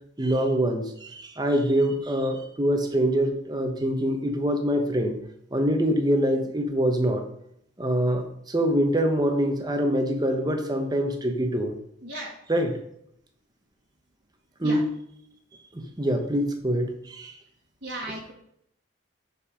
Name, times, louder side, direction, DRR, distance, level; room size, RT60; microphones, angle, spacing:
voice 1, 0.2-5.2 5.5-7.3 7.8-11.8 12.5-12.8 14.6-14.9 15.7-17.4 18.1-18.2, equal, 20° right, 5 dB, 1.0 m, -25 dB
voice 2, 12.0-12.3 14.6-14.8 17.8-18.3, right 1 dB, 65° right, -5 dB, 1.8 m, -35 dB
7.2 x 5.4 x 5.1 m, 0.73 s
head